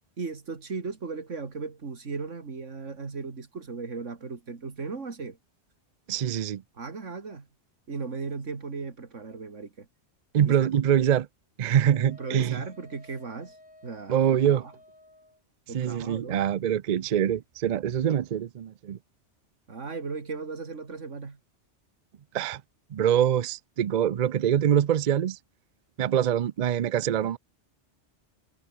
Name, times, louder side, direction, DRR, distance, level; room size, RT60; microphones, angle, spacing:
voice 1, 0.2-5.4 6.7-7.5 7.9-9.9 10.4-11.1 12.0-13.6 13.8-14.7 15.7-16.4 19.7-21.4, right 4 dB, 90° right, 2.6 m, -37 dB
voice 2, 6.1-6.6 10.3-11.3 11.6-12.6 14.1-14.6 15.7-19.0 22.3-22.6 22.9-25.4 26.0-27.4, right 9 dB, 50° right, 0.5 m, -24 dB
Wind instrument woodwind instrument, 11.8-15.4, left 1 dB, 50° left, 5.8 m, -54 dB
omnidirectional pair, 1.2 m